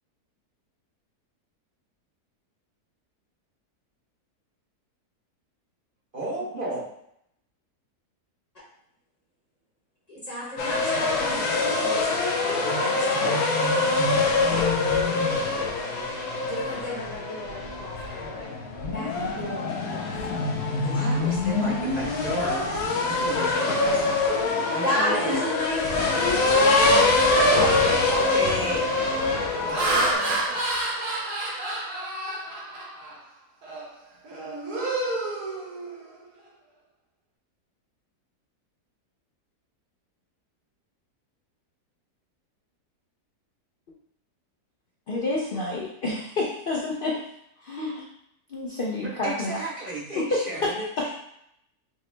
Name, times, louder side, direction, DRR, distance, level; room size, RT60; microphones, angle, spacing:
voice 1, 6.1-6.8 20.8-24.0 24.4-25.4 27.5-28.9 29.3-29.4 29.7-30.7 49.0-51.1, right 2 dB, 40° right, -6 dB, 0.8 m, -33 dB
voice 2, 10.1-13.4 16.4-18.5 18.9-20.1 20.6-21.0 24.8-26.3, equal, 30° left, -5 dB, 0.8 m, -34 dB
sound 1, 10.6-30.1, left 3 dB, 70° left, 1.1 m, -24 dB
Laughter, 28.5-28.8 29.4-33.2 33.6-33.9 34.2-36.2, right 2 dB, 75° right, 1.6 m, -29 dB
voice 3, 45.1-47.2 47.6-48.0 48.5-49.5 50.3-50.4, left 2 dB, 85° left, -4 dB, 0.4 m, -29 dB
5.7 x 2.1 x 3.2 m, 0.75 s
omnidirectional pair, 1.7 m